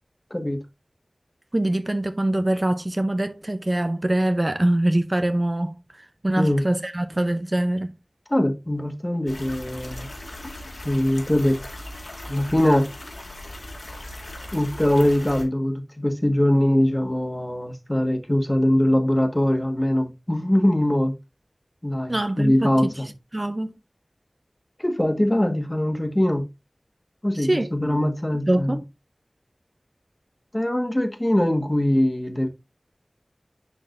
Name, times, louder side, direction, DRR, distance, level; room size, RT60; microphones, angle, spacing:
voice 1, 1.5-8.0 22.1-23.0 23.3-23.7 27.3-27.7 28.5-28.8, right 1 dB, 35° right, 0.5 m, -24 dB
voice 2, 8.3-10.1 10.8-11.6 12.2-12.9 14.5-21.1 21.8-23.1 24.8-26.4 27.2-28.8 30.5-32.5, left 1 dB, 20° left, 1.4 m, -22 dB
sound 1, 9.3-15.4, left 1 dB, 70° left, 1.9 m, -38 dB
10.5 x 3.9 x 2.5 m
wide cardioid pair, 55°, 0 cm